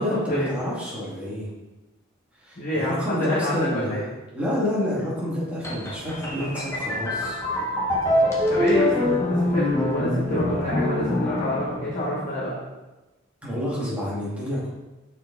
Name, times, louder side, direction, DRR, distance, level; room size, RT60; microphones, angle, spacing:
voice 1, 0.0-1.5 2.4-4.1 4.3-7.4 13.4-14.7, left 1 dB, 5° right, -7 dB, 2.0 m, -28 dB
voice 2, 2.6-4.0 8.5-12.6, equal, 40° left, -7 dB, 1.1 m, -27 dB
sound 1, 5.6-12.3, left 1 dB, 15° left, 1.1 m, -25 dB
6.4 x 4.4 x 3.9 m, 1.1 s
head